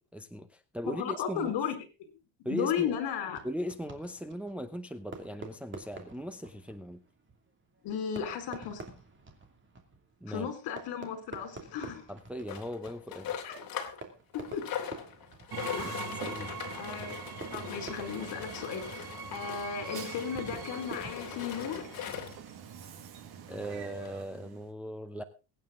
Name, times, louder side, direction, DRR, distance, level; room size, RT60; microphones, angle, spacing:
voice 1, 0.1-1.6 2.4-3.0 3.4-7.0 10.2-10.5 12.1-13.4 15.8-15.9 16.2-16.6 23.5-25.2, equal, 5° right, 7 dB, 0.8 m, -38 dB
voice 2, 0.9-1.8 2.4-3.4 7.8-8.8 10.3-12.1 13.4-13.6 14.3-14.7 15.7-16.0 16.8-17.2 17.5-21.9, left 7 dB, 65° left, 7 dB, 4.6 m, -35 dB
Fireworks, 3.3-22.1, right 3 dB, 25° right, 2.7 m, -49 dB
sound 1, 12.5-14.0 14.3-22.5 23.2-23.3 23.5-23.6 24.1-24.2, left 8 dB, 50° left, 3.1 m, -41 dB
Train, 15.5-24.7, right 6 dB, 55° right, 2.2 m, -43 dB
22.5 x 9.2 x 3.8 m, 0.32 s
cardioid pair, 150°, 45 cm